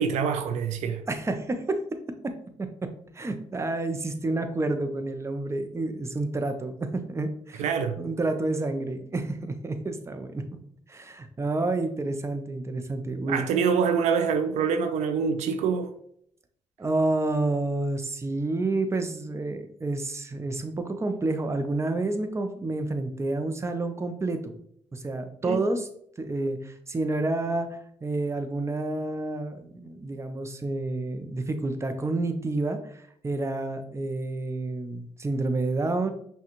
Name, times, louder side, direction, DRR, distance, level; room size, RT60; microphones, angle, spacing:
voice 1, 0.0-1.0 7.6-8.0 13.3-15.9 25.4-25.6, right 6 dB, 80° right, 0.4 m, -25 dB
voice 2, 1.1-1.8 2.6-2.9 3.1-7.7 8.0-10.4 10.9-13.4 16.8-24.5 24.9-25.9 26.2-36.1, right 2 dB, 25° right, 0.6 m, -29 dB
5.6 x 2.3 x 3.0 m
supercardioid pair, 65°, 12 cm